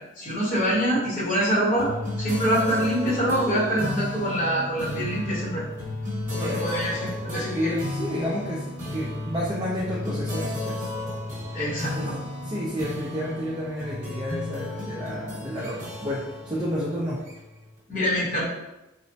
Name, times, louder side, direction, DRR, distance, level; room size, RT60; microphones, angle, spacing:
voice 1, 0.2-1.9 2.2-5.6 6.3-7.7 11.5-12.2 17.9-18.5, equal, 40° left, -7 dB, 1.0 m, -25 dB
sound 1, 1.8-17.7, left 2 dB, 40° right, 0.8 m, -33 dB
voice 2, 7.3-10.9 12.0-12.1 12.4-17.2, equal, 20° right, -6 dB, 0.4 m, -30 dB
3.0 x 2.0 x 2.7 m, 0.98 s
head